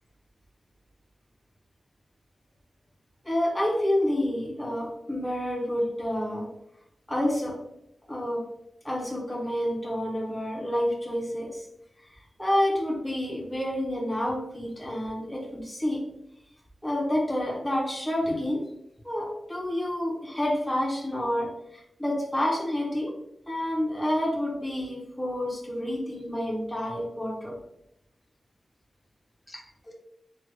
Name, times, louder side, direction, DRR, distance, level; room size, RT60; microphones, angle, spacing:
voice 1, 3.2-6.5 7.1-7.6 8.1-8.4 8.8-11.7 12.4-16.0 16.8-18.6 19.0-23.1 23.5-27.6 29.5-29.6, left 1 dB, 5° left, -3 dB, 0.6 m, -29 dB
3.2 x 2.1 x 3.0 m, 0.78 s
wide cardioid pair, 150°, 0 cm